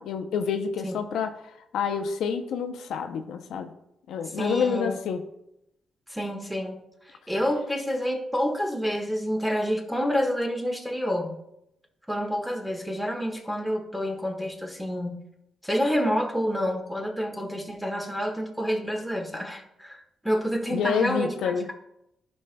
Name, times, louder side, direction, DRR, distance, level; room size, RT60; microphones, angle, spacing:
voice 1, 0.0-1.3 1.7-3.7 4.1-5.2 20.7-21.7, left 6 dB, 85° left, 6 dB, 0.6 m, -28 dB
voice 2, 4.3-5.0 6.1-11.4 12.1-15.2 15.6-21.3, equal, ahead, 2 dB, 1.4 m, -28 dB
11.5 x 5.3 x 2.2 m, 0.81 s
cardioid pair, 85°, 0 cm